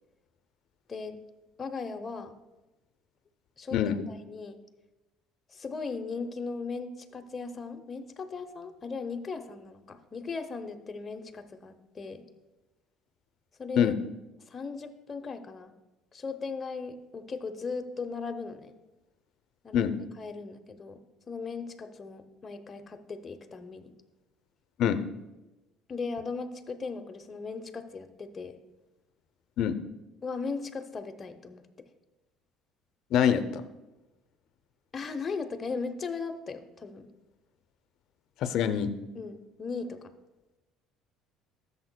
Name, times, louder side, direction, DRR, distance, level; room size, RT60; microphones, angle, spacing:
voice 1, 0.9-1.2 1.6-2.3 3.6-4.6 5.5-12.2 13.6-13.9 14.5-15.7 16.1-18.8 19.6-23.9 25.9-28.6 30.2-31.6 34.9-37.1 39.1-40.1, left 4 dB, 30° left, 7 dB, 0.8 m, -38 dB
voice 2, 33.1-33.6 38.4-38.9, left 9 dB, 65° left, 11 dB, 0.6 m, -25 dB
12.5 x 7.0 x 2.2 m, 1.1 s
supercardioid pair, 90°, 0 cm